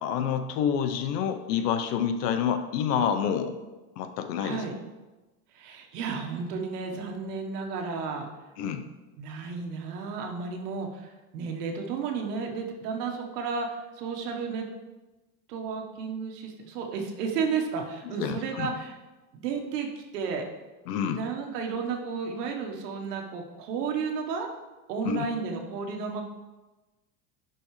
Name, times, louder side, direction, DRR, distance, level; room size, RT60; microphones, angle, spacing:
voice 1, 0.0-3.6 4.0-4.6 8.6-8.9 18.2-18.7 20.9-21.2 25.0-25.3, left 8 dB, 85° left, 8 dB, 0.9 m, -28 dB
voice 2, 4.4-4.7 5.5-8.3 9.2-14.7 15.5-18.9 19.3-20.5 21.1-24.5 24.9-26.2, right 5 dB, 80° right, 2 dB, 1.5 m, -32 dB
10.0 x 6.1 x 3.2 m, 1.1 s
supercardioid pair, 160°, 46 cm